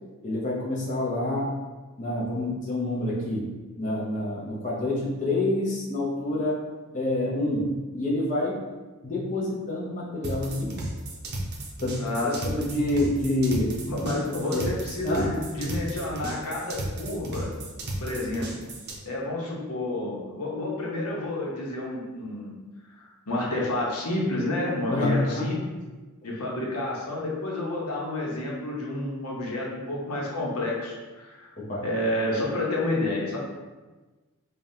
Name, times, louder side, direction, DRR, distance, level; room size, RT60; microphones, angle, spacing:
voice 1, 0.2-1.5 2.0-3.5 3.8-6.6 6.9-8.6 9.0-10.7 11.8-13.8 14.5-14.7 15.0-15.3 24.9-25.5 31.6-31.8, left 1 dB, 35° left, -5 dB, 0.6 m, -27 dB
sound 1, 10.2-19.0, right 1 dB, 45° right, 0.6 m, -34 dB
voice 2, 12.0-12.5 13.8-18.5 19.0-22.5 22.9-25.6 26.2-31.5 31.8-33.4, left 1 dB, 90° left, -3 dB, 1.0 m, -30 dB
5.1 x 2.4 x 2.7 m, 1.2 s
head